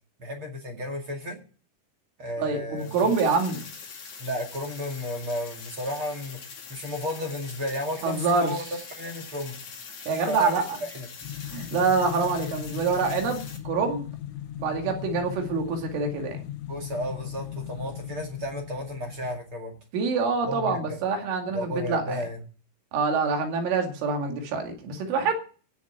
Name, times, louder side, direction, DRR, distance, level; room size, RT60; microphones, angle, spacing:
voice 1, 0.2-1.4 2.2-3.1 4.2-6.4 6.7-8.6 8.9-9.6 10.1-11.1 16.7-19.8 20.4-21.0 21.5-22.4, left 1 dB, 45° right, 1 dB, 1.7 m, -33 dB
voice 2, 2.4-3.7 8.0-8.5 10.1-10.7 11.5-14.1 14.6-16.4 19.9-22.2 22.9-25.3, right 4 dB, 70° right, 3 dB, 4.6 m, -26 dB
sound 1, 2.8-13.6, left 5 dB, 40° left, 3.2 m, -43 dB
sound 2, 11.2-19.4, left 10 dB, 75° left, 2.9 m, -38 dB
17.0 x 7.1 x 8.8 m, 0.40 s
omnidirectional pair, 6.0 m